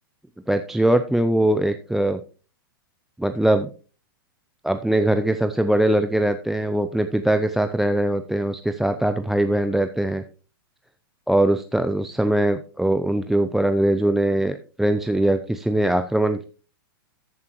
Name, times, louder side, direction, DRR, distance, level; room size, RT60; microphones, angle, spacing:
voice 1, 0.5-2.2 3.2-3.7 4.6-10.2 11.3-16.4, right 1 dB, ahead, 8 dB, 0.5 m, -21 dB
14.0 x 7.4 x 3.0 m, 0.37 s
hypercardioid pair, 120°, 12 cm